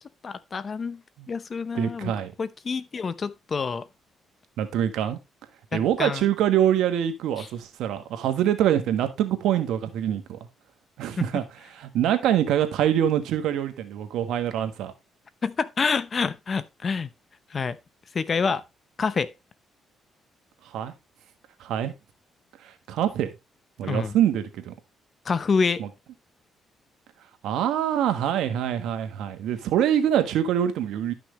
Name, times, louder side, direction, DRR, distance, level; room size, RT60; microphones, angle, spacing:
voice 1, 0.2-1.0 1.3-2.1 2.4-3.9 5.7-6.2 7.4-7.5 15.4-17.1 17.5-17.8 18.1-18.6 19.0-19.3 23.8-24.1 25.2-25.8, left 5 dB, 40° left, 0.8 m, -27 dB
voice 2, 1.7-2.3 4.6-5.2 5.7-10.4 11.0-11.4 11.7-14.9 20.7-20.9 21.6-21.9 22.6-23.3 23.8-24.7 25.8-25.9 27.4-31.1, right 10 dB, 85° right, 1.4 m, -24 dB
12.0 x 6.0 x 3.2 m
cardioid pair, 90°, 0 cm